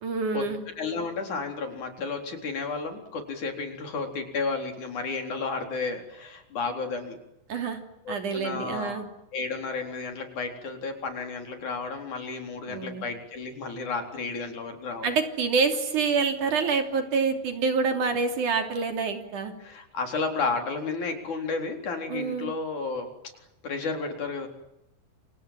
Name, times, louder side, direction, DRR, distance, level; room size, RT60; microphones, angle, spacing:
voice 1, 0.0-0.6 7.5-7.8 8.1-9.1 12.7-13.1 15.0-19.5 22.1-22.5, right 5 dB, 65° right, 6 dB, 4.5 m, -27 dB
voice 2, 0.8-7.2 8.1-9.0 9.3-15.1 19.6-23.1 23.6-24.5, left 4 dB, 60° left, 5 dB, 5.4 m, -32 dB
28.5 x 26.5 x 7.7 m, 0.87 s
omnidirectional pair, 3.9 m